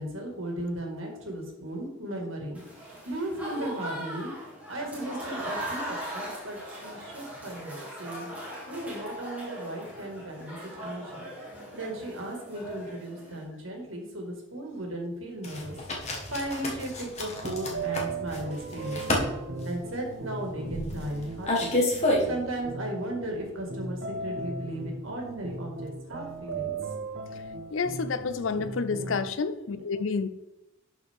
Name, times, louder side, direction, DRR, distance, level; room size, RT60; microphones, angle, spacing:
voice 1, 0.0-4.3 4.7-8.3 8.7-11.3 11.7-15.7 16.0-19.3 19.6-21.8 22.3-26.7 28.5-29.1 29.7-29.8, right 1 dB, 75° right, 1 dB, 2.0 m, -36 dB
Applause / Crowd, 2.5-13.4, equal, 5° right, 1.9 m, -39 dB
sound 1, 15.4-22.6, left 1 dB, 35° left, 1.5 m, -30 dB
sound 2, 17.4-29.3, right 3 dB, 55° right, 0.9 m, -38 dB
voice 2, 27.7-30.3, left 4 dB, 70° left, 12 dB, 0.5 m, -29 dB
11.5 x 4.6 x 3.6 m, 0.95 s
head